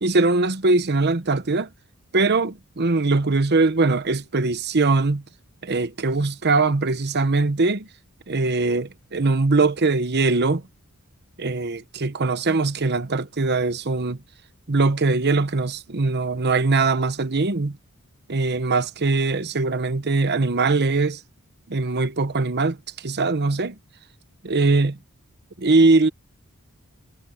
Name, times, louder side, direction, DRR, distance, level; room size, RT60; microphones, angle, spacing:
voice 1, 0.0-1.7 2.1-5.2 5.6-7.9 8.3-10.6 11.4-14.2 14.7-17.8 18.3-21.2 21.7-23.7 24.4-25.0 25.6-26.1, right 3 dB, 50° right, 1.0 m, -21 dB
head